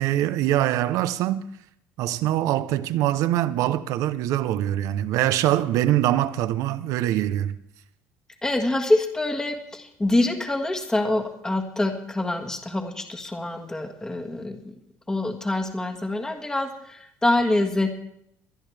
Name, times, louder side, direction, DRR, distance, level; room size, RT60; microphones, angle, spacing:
voice 1, 0.0-1.4 2.0-7.6, right 13 dB, 70° right, 0.7 m, -23 dB
voice 2, 8.4-14.8 15.1-17.9, left 2 dB, 10° left, 1.5 m, -25 dB
23.0 x 11.0 x 3.4 m
cardioid pair, 135°, 6 cm